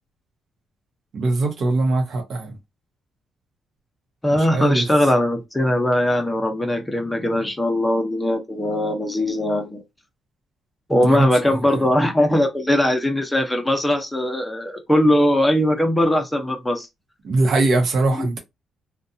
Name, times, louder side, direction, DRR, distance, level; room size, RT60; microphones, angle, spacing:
voice 1, 1.1-2.5 4.5-4.8 11.0-11.3 17.2-18.4, right 2 dB, 60° right, 0.9 m, -21 dB
voice 2, 4.2-9.8 10.9-16.9 18.1-18.4, left 1 dB, 10° left, 0.8 m, -20 dB
2.6 x 2.3 x 2.7 m
cardioid pair, 90°, 0 cm